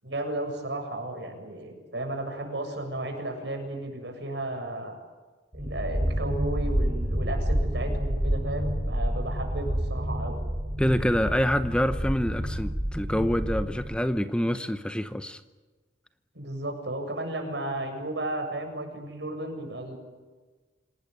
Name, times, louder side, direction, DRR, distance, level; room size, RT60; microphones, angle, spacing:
voice 1, 0.0-4.9 5.5-10.4 16.3-20.0, right 1 dB, 70° right, 4 dB, 7.3 m, -34 dB
sound 1, 5.5-14.0, equal, 10° right, 4.8 m, -29 dB
voice 2, 10.8-15.4, equal, 5° left, 10 dB, 0.8 m, -26 dB
27.0 x 19.0 x 9.4 m, 1.3 s
head